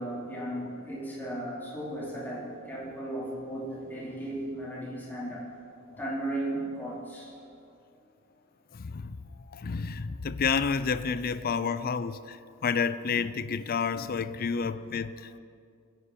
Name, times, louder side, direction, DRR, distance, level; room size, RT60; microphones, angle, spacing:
voice 1, 0.0-5.5 6.0-7.4, right 1 dB, 10° left, -8 dB, 4.2 m, -35 dB
voice 2, 8.7-9.2 9.5-15.4, left 5 dB, 45° left, 14 dB, 0.5 m, -30 dB
20.0 x 10.0 x 4.4 m, 2.4 s
head